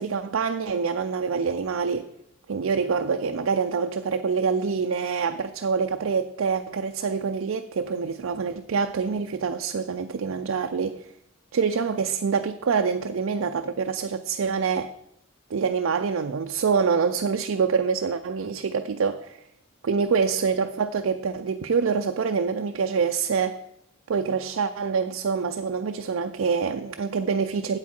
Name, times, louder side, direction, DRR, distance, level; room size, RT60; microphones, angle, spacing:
voice 1, 0.0-2.1 2.5-11.1 11.5-14.9 15.5-19.4 19.8-23.6 24.1-27.8, right 5 dB, 75° right, 0.5 m, -26 dB
8.3 x 8.3 x 4.4 m
head